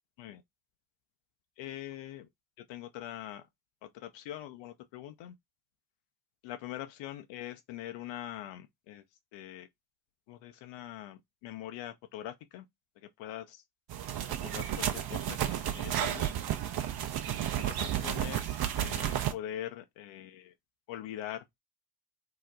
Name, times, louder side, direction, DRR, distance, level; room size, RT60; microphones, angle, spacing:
voice 1, 1.6-2.3 2.6-3.4 3.8-5.3 6.4-9.0 9.3-9.7 10.3-12.7 13.0-13.6 14.4-16.3 17.5-20.5 20.9-21.4, left 12 dB, 70° left, 0.6 m, -43 dB
sound 1, 13.9-19.3, right 10 dB, 50° right, 0.7 m, -32 dB
2.9 x 2.1 x 3.7 m
hypercardioid pair, 40°, 47 cm